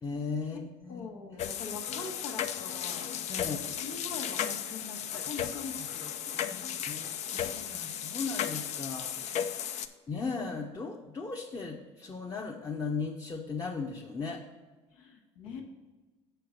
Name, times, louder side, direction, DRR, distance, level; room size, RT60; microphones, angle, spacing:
voice 1, 0.0-1.1 3.3-3.6 5.1-5.2 5.8-5.9 6.3-6.6 6.9-9.1 9.6-9.7 10.1-14.4, left 4 dB, 25° left, 0 dB, 0.9 m, -37 dB
voice 2, 0.9-3.1 3.4-7.1 14.9-15.6, left 4 dB, 80° left, 1 dB, 1.5 m, -44 dB
sound 1, 1.4-9.9, left 9 dB, 55° left, 0.5 m, -35 dB
6.9 x 4.6 x 6.6 m, 1.3 s
supercardioid pair, 80°, 14 cm